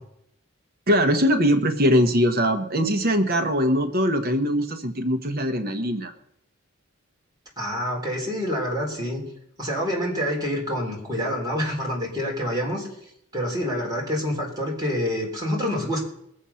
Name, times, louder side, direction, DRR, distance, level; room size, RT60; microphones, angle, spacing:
voice 1, 0.9-6.1, equal, 45° right, 8 dB, 1.0 m, -21 dB
voice 2, 7.6-9.2 9.6-16.0, equal, 20° right, -3 dB, 3.5 m, -27 dB
21.0 x 7.6 x 5.7 m, 0.77 s
head